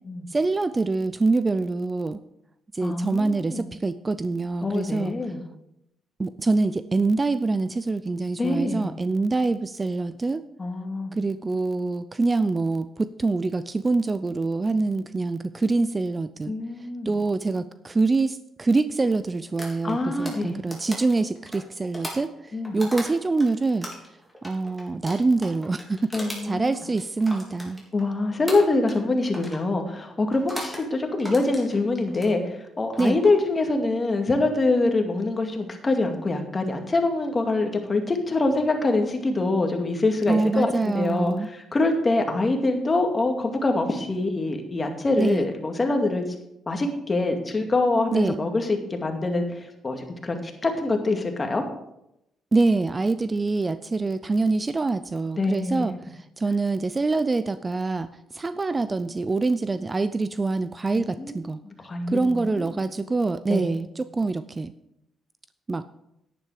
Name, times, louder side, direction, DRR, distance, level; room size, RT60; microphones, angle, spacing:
voice 1, 0.3-2.2 2.7-5.2 6.2-10.4 11.1-16.6 17.1-23.9 24.4-27.8 33.0-33.2 40.3-41.5 45.2-45.5 48.1-48.4 52.5-61.6 62.1-64.7 65.7-65.8, right 3 dB, 25° right, 14 dB, 0.4 m, -25 dB
voice 2, 2.8-3.7 4.6-5.4 8.4-8.9 10.6-11.2 16.5-17.1 19.8-20.5 22.5-22.8 26.1-26.7 27.9-46.2 46.7-51.6 55.4-55.9 60.9-62.7 63.5-63.6, left 2 dB, 30° left, 4 dB, 2.2 m, -25 dB
sound 1, 19.6-23.5 23.8-28.1 28.5-29.1 29.3-29.7 30.3-30.8 31.2-32.3 32.8-33.3, equal, 5° right, 3.7 m, -37 dB
10.5 x 10.0 x 4.9 m, 0.83 s
cardioid pair, 90°, 0 cm